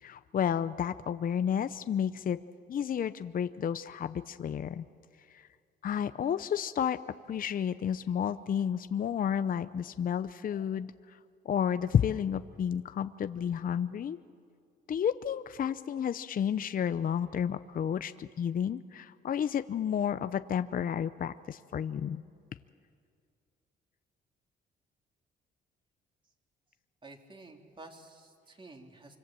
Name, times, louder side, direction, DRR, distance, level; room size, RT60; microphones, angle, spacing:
voice 1, 0.0-2.4 2.7-4.8 5.3-5.5 5.8-7.0 7.3-11.2 11.4-14.2 14.9-22.2, left 8 dB, 45° left, 12 dB, 0.6 m, -31 dB
voice 2, 27.0-29.2, right 2 dB, 25° right, 2 dB, 3.2 m, -51 dB
25.5 x 25.0 x 7.6 m, 2.3 s
cardioid pair, 90°, 20 cm